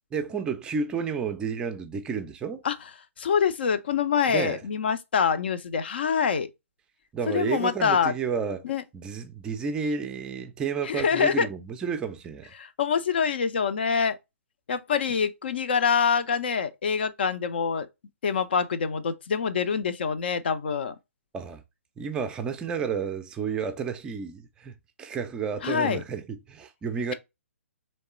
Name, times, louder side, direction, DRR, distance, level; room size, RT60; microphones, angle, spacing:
voice 1, 0.1-2.6 4.3-4.6 7.1-8.7 8.9-12.5 21.3-21.6 22.0-27.1, right 6 dB, 10° right, 0.4 m, -31 dB
voice 2, 3.2-6.5 7.3-8.1 8.6-8.8 10.8-11.5 12.6-14.2 14.7-17.9 18.2-20.9 25.6-26.0, left 6 dB, 45° left, 0.5 m, -25 dB
3.5 x 3.2 x 4.2 m
figure-of-eight pair, 130°, 7 cm